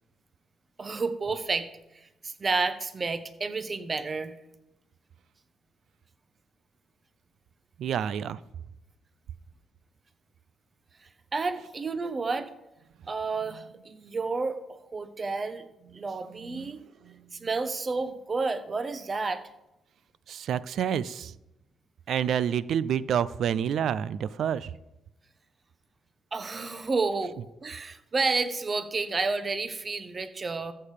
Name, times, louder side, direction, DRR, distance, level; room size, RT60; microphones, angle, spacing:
voice 1, 0.8-1.7 1.9-4.3 11.0-12.5 13.1-15.7 15.9-16.8 17.3-19.4 26.3-30.7, right 4 dB, 35° right, 11 dB, 1.1 m, -31 dB
voice 2, 7.8-8.4 16.4-16.7 17.0-17.2 20.3-21.3 22.1-24.7, right 9 dB, 70° right, 18 dB, 0.4 m, -28 dB
14.0 x 6.7 x 5.0 m, 0.91 s
cardioid pair, 90°, 0 cm